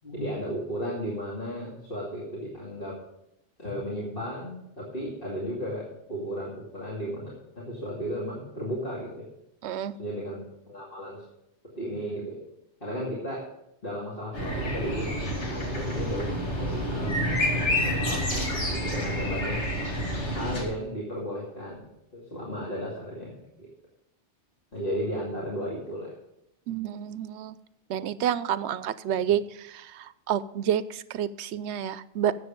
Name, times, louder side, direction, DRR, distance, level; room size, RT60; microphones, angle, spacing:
voice 1, 0.0-3.0 3.6-7.3 7.6-9.2 10.0-11.2 11.8-12.4 12.8-13.5 13.8-16.3 16.6-19.6 20.4-21.8 22.1-23.7 24.7-26.1, equal, 50° left, -6 dB, 2.7 m, -34 dB
voice 2, 9.6-10.0 26.7-27.6 27.9-32.3, right 10 dB, 75° right, 16 dB, 0.8 m, -29 dB
sound 1, 14.3-20.6, equal, 90° left, 2.8 m, -28 dB
13.0 x 8.0 x 5.1 m, 0.82 s
omnidirectional pair, 1.2 m